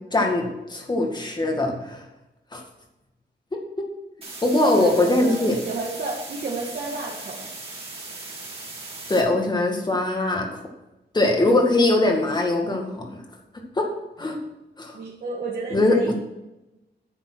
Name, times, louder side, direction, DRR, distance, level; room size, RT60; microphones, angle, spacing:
voice 1, 0.1-2.0 2.5-2.6 4.4-5.6 9.1-10.6 11.1-13.1 13.8-13.9 14.2-14.4 14.8-15.0 15.7-16.1, left 2 dB, 25° left, 2 dB, 2.1 m, -21 dB
sound 1, 4.2-9.2, right 3 dB, 30° right, 3.0 m, -38 dB
voice 2, 4.6-7.5 14.9-16.1, right 3 dB, 55° right, -3 dB, 2.1 m, -31 dB
10.5 x 7.5 x 6.2 m, 0.97 s
wide cardioid pair, 155°, 19 cm